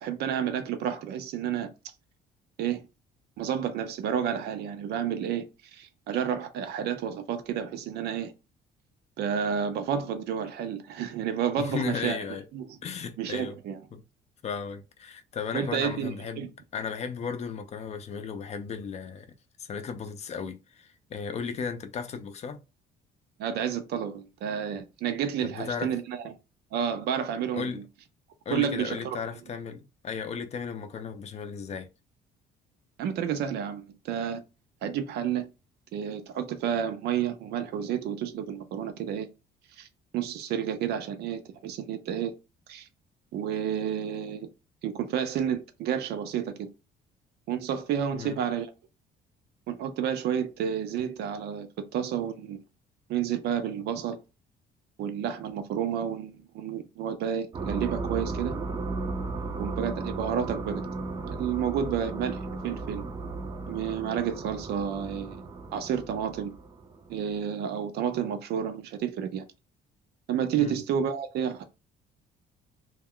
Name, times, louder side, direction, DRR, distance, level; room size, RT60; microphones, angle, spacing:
voice 1, 0.0-1.7 2.6-2.8 3.4-8.3 9.2-12.2 12.5-12.7 13.2-13.8 15.5-16.5 23.4-26.2 26.7-27.8 28.5-29.2 33.0-34.4 34.8-35.5 35.9-39.3 39.8-39.9 40.1-42.4 42.7-42.9 43.3-44.5 44.8-46.7 47.5-48.7 49.7-52.6 53.1-54.2 55.0-58.6 59.5-60.9 61.3-63.0 63.7-65.4 65.7-66.5 67.1-69.5 70.3-71.6, right 8 dB, 75° right, 0.5 m, -30 dB
voice 2, 11.6-12.5 12.8-13.6 13.9-14.0 14.4-19.3 19.6-22.6 25.4-25.9 27.5-27.8 28.5-31.9 48.1-48.4 70.6-70.8, left 6 dB, 40° left, 0.5 m, -35 dB
sound 1, 57.5-67.3, right 3 dB, 25° right, 0.4 m, -35 dB
2.3 x 2.1 x 3.6 m
cardioid pair, 110°, 17 cm